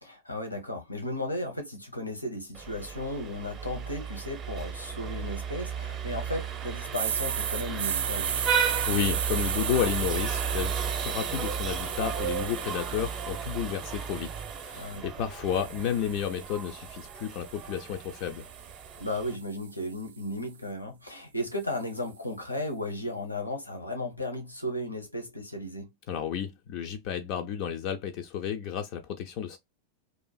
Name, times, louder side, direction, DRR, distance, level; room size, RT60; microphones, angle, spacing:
voice 1, 0.0-8.4 14.7-15.1 19.0-25.9, left 1 dB, 85° left, 0.8 m, -35 dB
Vehicle horn car horn honking, 2.5-19.4, right 7 dB, 30° right, 0.6 m, -34 dB
sound 1, 6.9-15.0 15.5-19.7, right 8 dB, 65° right, 0.3 m, -35 dB
voice 2, 8.4-14.3 14.6-18.5 26.1-29.6, left 8 dB, 45° left, 0.3 m, -32 dB
2.4 x 2.3 x 2.2 m
figure-of-eight pair, 90°, 0 cm